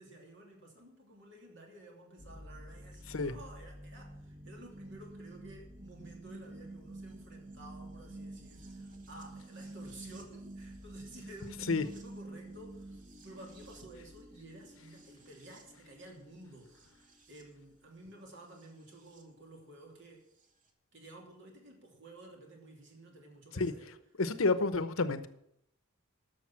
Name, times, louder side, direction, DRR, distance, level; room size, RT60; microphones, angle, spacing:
voice 1, 0.0-20.2 20.9-23.9, right 1 dB, 60° right, 1 dB, 2.9 m, -53 dB
sound 1, 2.2-19.2 20.4-20.5, right 1 dB, 40° right, 1.5 m, -50 dB
voice 2, 24.2-25.3, left 3 dB, 80° left, 12 dB, 0.9 m, -29 dB
12.0 x 6.7 x 7.5 m, 0.75 s
head